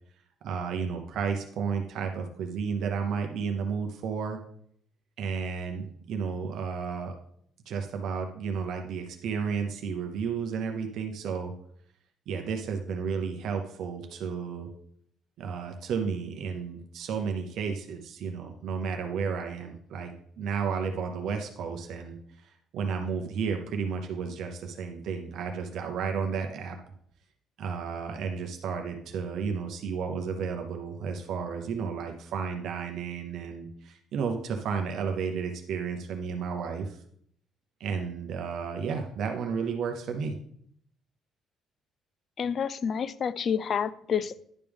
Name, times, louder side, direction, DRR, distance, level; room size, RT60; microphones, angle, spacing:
voice 1, 0.4-4.4 5.2-7.2 7.7-11.5 12.3-14.7 15.4-22.2 22.4-26.8 27.6-37.0 37.8-40.3, right 6 dB, 55° right, 4 dB, 0.7 m, -32 dB
voice 2, 42.4-44.5, left 7 dB, 35° left, 16 dB, 0.3 m, -29 dB
10.5 x 5.3 x 3.5 m, 0.67 s
cardioid pair, 170°, 0 cm